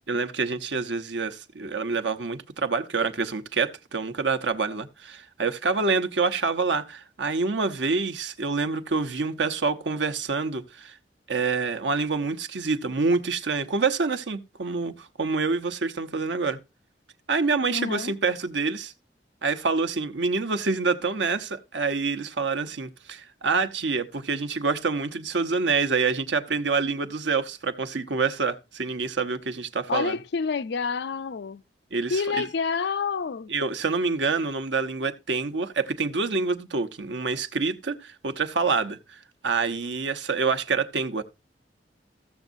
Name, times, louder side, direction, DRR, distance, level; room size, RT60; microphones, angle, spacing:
voice 1, 0.1-11.0 11.3-16.6 17.3-18.9 19.4-30.2 31.9-32.5 33.5-41.2, right 4 dB, 85° right, 0.9 m, -27 dB
voice 2, 17.7-18.1 29.9-31.6 32.1-33.5, left 5 dB, 65° left, 0.5 m, -28 dB
14.5 x 7.2 x 2.5 m
head